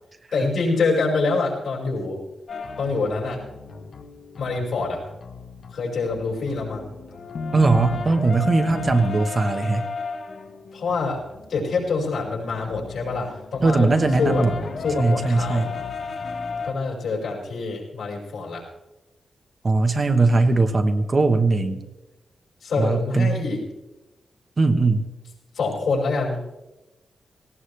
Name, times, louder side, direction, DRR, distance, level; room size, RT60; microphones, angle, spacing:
voice 1, 0.3-2.2 2.8-3.4 4.4-5.0 5.7-6.9 10.7-11.2 11.5-13.9 14.2-14.5 14.8-15.7 16.6-18.6 22.6-23.6 25.6-26.4, left 3 dB, 90° left, -3 dB, 5.4 m, -25 dB
sound 1, 2.5-5.7 6.0-16.7, left 4 dB, 55° left, 1.2 m, -34 dB
voice 2, 7.5-9.9 13.6-14.5 15.0-15.7 19.6-21.8 22.8-23.4 24.6-25.1, right 3 dB, 30° right, 7 dB, 1.1 m, -20 dB
18.0 x 18.0 x 3.3 m, 0.99 s
wide cardioid pair, 160°, 0 cm